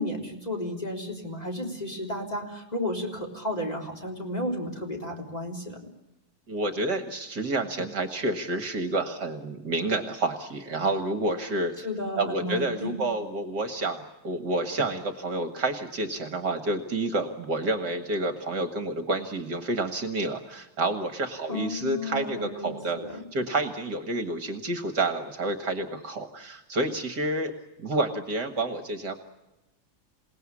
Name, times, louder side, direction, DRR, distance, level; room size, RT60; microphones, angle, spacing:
voice 1, 0.0-5.8 11.8-13.1 21.5-23.3, left 1 dB, 20° left, 1 dB, 3.8 m, -33 dB
voice 2, 6.5-11.9 12.2-23.0 23.3-27.5 27.8-29.1, right 2 dB, 55° right, 8 dB, 2.2 m, -29 dB
28.0 x 18.5 x 9.8 m, 0.97 s
omnidirectional pair, 2.3 m